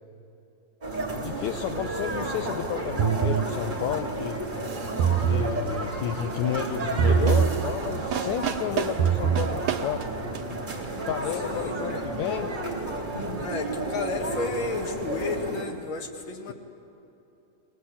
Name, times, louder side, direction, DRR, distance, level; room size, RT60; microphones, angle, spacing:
sound 1, 0.8-15.6, right 2 dB, 15° right, 3.3 m, -32 dB
voice 1, 1.1-4.4 5.2-10.3 11.0-12.5, left 10 dB, 75° left, 6 dB, 2.0 m, -31 dB
sound 2, 3.0-3.5 4.9-5.5 7.0-7.5 8.9-9.5, right 8 dB, 85° right, 2.3 m, -22 dB
sound 3, 4.6-5.4 7.3-10.8, right 8 dB, 60° right, 1.9 m, -34 dB
voice 2, 11.4-12.0 13.4-16.5, left 3 dB, 45° left, 2 dB, 2.5 m, -33 dB
23.5 x 19.0 x 8.6 m, 2.8 s
omnidirectional pair, 3.5 m